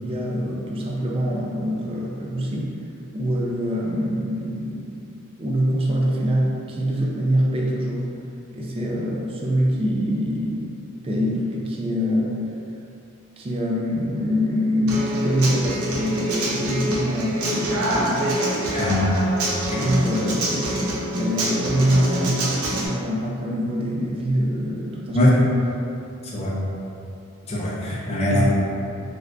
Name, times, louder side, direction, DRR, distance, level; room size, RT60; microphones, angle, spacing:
voice 1, 0.0-2.8 3.1-8.1 8.5-10.7 11.0-12.3 13.4-18.4 19.7-25.5 28.3-28.4, equal, 25° right, -3 dB, 0.3 m, -24 dB
Human voice / Acoustic guitar, 14.9-22.9, right 1 dB, 80° right, 0.5 m, -26 dB
voice 2, 18.7-19.1 19.8-20.0 25.1-25.4 26.3-26.5 27.5-28.4, left 1 dB, 30° left, -6 dB, 0.6 m, -21 dB
3.4 x 2.5 x 2.2 m, 2.6 s
head